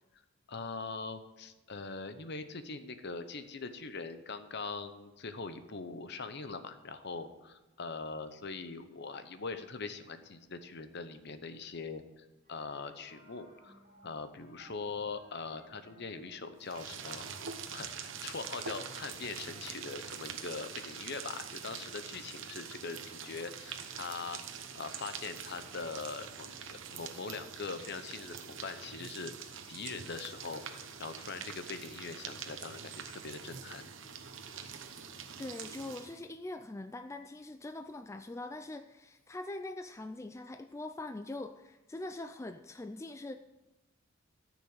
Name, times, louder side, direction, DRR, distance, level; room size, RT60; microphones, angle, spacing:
voice 1, 0.5-17.3 17.7-24.4 24.7-33.8, left 4 dB, 55° left, 10 dB, 0.9 m, -42 dB
sound 1, 12.4-19.7, right 1 dB, 40° right, 3.5 m, -60 dB
sound 2, 16.6-36.2, right 7 dB, 65° right, 1.0 m, -45 dB
voice 2, 35.4-43.4, left 2 dB, 15° left, 8 dB, 0.3 m, -43 dB
14.0 x 6.2 x 7.2 m, 1.0 s
head